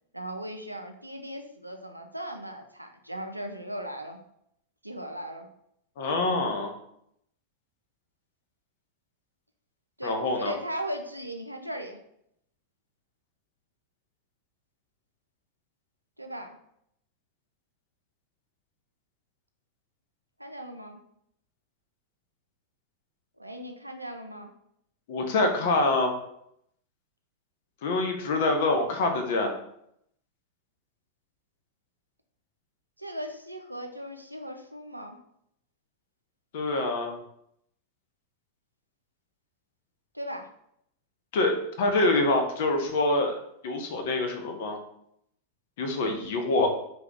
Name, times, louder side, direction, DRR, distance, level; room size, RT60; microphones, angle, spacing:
voice 1, 0.1-4.2 4.8-5.5 10.0-12.0 16.2-16.6 20.4-21.0 23.4-24.5 33.0-35.2 40.1-40.5, equal, 85° right, 5 dB, 0.4 m, -38 dB
voice 2, 6.0-6.7 10.0-10.5 25.1-26.1 27.8-29.5 36.5-37.2 41.3-43.3 43.6-44.8 45.8-46.7, left 2 dB, 55° left, 4 dB, 0.5 m, -25 dB
2.7 x 2.2 x 3.4 m, 0.73 s
figure-of-eight pair, 90°, 0 cm